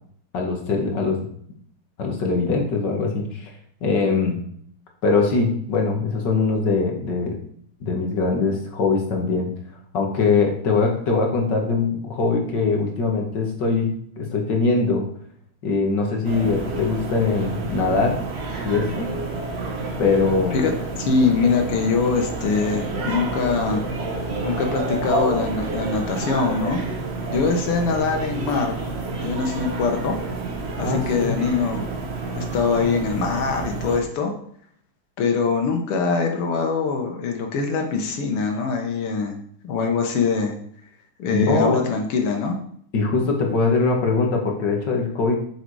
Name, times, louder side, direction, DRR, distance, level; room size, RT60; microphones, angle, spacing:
voice 1, 0.3-1.3 2.0-3.5 3.8-4.4 5.0-7.4 7.8-9.5 9.9-15.1 15.6-18.2 18.6-19.1 20.0-20.7 30.8-31.3 41.3-41.8 42.9-45.4, left 4 dB, 55° left, 2 dB, 2.1 m, -22 dB
sound 1, 16.2-34.0, right 3 dB, 35° right, 1.2 m, -29 dB
voice 2, 20.5-23.9 24.4-26.8 27.3-28.7 29.2-30.2 30.8-31.9 32.3-34.3 35.2-39.4 39.6-40.6 41.2-42.6, left 4 dB, 85° left, 3 dB, 2.2 m, -23 dB
6.9 x 6.8 x 4.7 m, 0.63 s
omnidirectional pair, 2.4 m